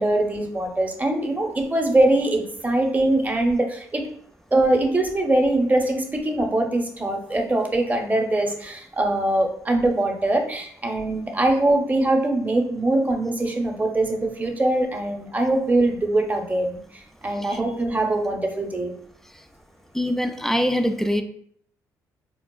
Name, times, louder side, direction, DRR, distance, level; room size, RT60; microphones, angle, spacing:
voice 1, 0.0-4.0 4.5-18.9, right 2 dB, 20° right, 0.7 m, -22 dB
voice 2, 19.9-21.2, equal, 5° left, 0.3 m, -23 dB
4.5 x 2.3 x 2.3 m
supercardioid pair, 55°, 8 cm